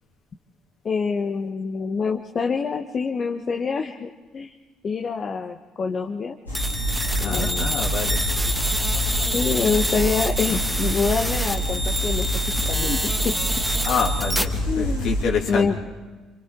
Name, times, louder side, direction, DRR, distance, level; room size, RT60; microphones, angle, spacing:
voice 1, 0.8-4.5 4.8-6.4 7.2-7.7 9.3-12.3 12.6-13.3 14.7-15.1 15.5-15.7, left 5 dB, 40° left, 4 dB, 1.1 m, -26 dB
sound 1, 6.5-15.2, right 1 dB, 90° left, 3.5 m, -27 dB
sound 2, 6.5-14.4, equal, ahead, 1.8 m, -27 dB
voice 2, 7.0-8.2 13.8-15.8, left 6 dB, 55° left, 2 dB, 2.7 m, -27 dB
29.0 x 27.0 x 3.7 m, 1.3 s
figure-of-eight pair, 50°, 0 cm